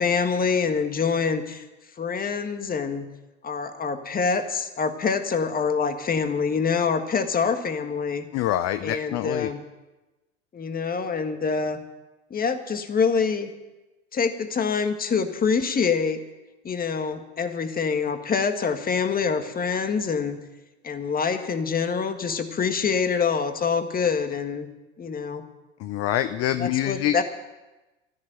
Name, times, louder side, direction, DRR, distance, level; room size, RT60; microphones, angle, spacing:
voice 1, 0.0-1.6 2.0-3.1 3.4-8.2 8.8-9.6 10.5-11.8 12.3-13.5 14.1-16.2 16.6-20.4 20.8-24.7 25.0-25.4 26.6-27.2, left 5 dB, 25° left, 8 dB, 1.6 m, -25 dB
voice 2, 8.3-9.5 25.8-27.2, left 12 dB, 40° left, 12 dB, 0.7 m, -25 dB
13.5 x 11.0 x 9.0 m, 1.1 s
hypercardioid pair, 85°, 38 cm